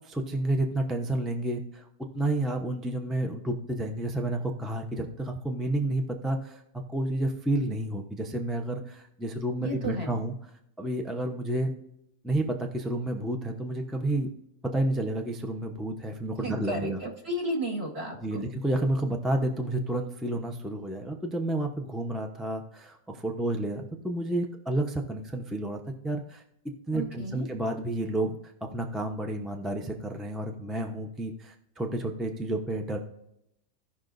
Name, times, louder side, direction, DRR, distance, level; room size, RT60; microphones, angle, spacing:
voice 1, 0.0-1.9 2.1-6.6 6.9-10.3 10.8-11.7 12.2-14.3 14.6-17.0 18.2-33.0, right 1 dB, ahead, 3 dB, 0.3 m, -30 dB
voice 2, 9.6-10.2 16.4-18.4 26.9-27.4, right 1 dB, 35° right, -1 dB, 2.0 m, -33 dB
17.0 x 5.8 x 2.6 m, 0.81 s
omnidirectional pair, 1.9 m